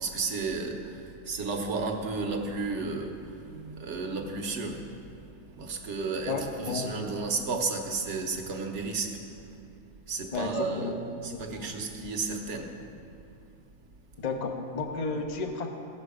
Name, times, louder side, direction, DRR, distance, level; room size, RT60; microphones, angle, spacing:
voice 1, 0.0-4.9 5.5-9.3 10.1-12.8, right 4 dB, 55° right, 3 dB, 1.2 m, -33 dB
voice 2, 6.3-7.2 10.3-11.0 11.3-11.7 14.2-15.7, left 4 dB, 35° left, 5 dB, 0.8 m, -33 dB
17.0 x 6.2 x 4.9 m, 2.5 s
omnidirectional pair, 1.5 m